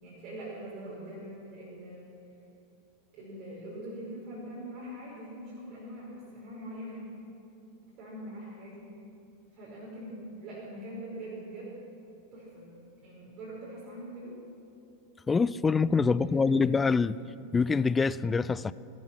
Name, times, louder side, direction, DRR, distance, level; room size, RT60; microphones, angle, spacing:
voice 1, 0.0-2.1 3.1-7.1 7.8-8.9 9.5-11.7 12.3-12.7 13.0-14.4 16.1-17.0, right 1 dB, 35° right, -7 dB, 4.9 m, -43 dB
voice 2, 15.3-17.2 17.5-18.7, left 4 dB, 15° left, 17 dB, 0.3 m, -25 dB
18.5 x 12.5 x 6.0 m, 2.6 s
figure-of-eight pair, 90°, 0 cm